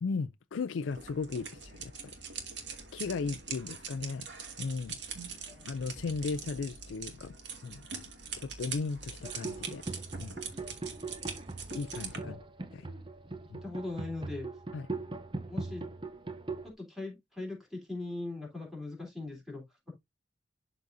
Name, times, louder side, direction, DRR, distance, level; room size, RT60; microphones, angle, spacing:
voice 1, 0.0-2.2 2.9-4.3 4.6-5.0 5.7-7.4 7.6-7.8 8.4-9.8 10.2-10.4 11.7-12.4 12.7-12.9 13.5-13.6 14.7-14.9, left 4 dB, 85° left, 0.4 m, -36 dB
sound 1, 0.9-12.2, right 6 dB, 65° right, 2.0 m, -43 dB
sound 2, 9.2-16.7, right 3 dB, 25° right, 0.7 m, -40 dB
voice 2, 13.6-14.5 15.5-15.8 16.6-19.6, left 2 dB, ahead, 3.4 m, -40 dB
12.0 x 4.0 x 2.6 m
head